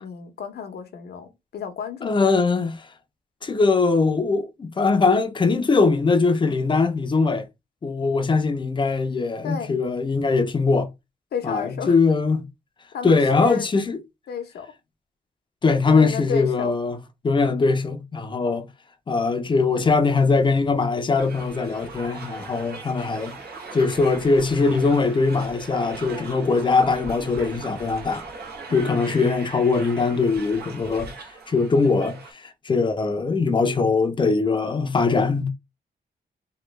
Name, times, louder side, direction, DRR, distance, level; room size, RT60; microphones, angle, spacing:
voice 1, 0.0-2.3 9.4-9.7 11.3-12.0 12.9-13.7 14.3-14.7 15.9-16.7 28.7-29.2, left 7 dB, 75° left, 0.8 m, -32 dB
voice 2, 2.0-2.9 3.4-7.5 7.8-10.9 11.4-12.4 13.0-14.0 15.6-17.0 17.2-18.7 19.1-23.4 23.7-28.2 28.7-31.1 31.5-35.5, left 4 dB, 30° left, 0.5 m, -21 dB
sound 1, 21.2-32.3, right 4 dB, 75° right, 0.8 m, -39 dB
3.2 x 2.2 x 3.1 m
wide cardioid pair, 135°, 17 cm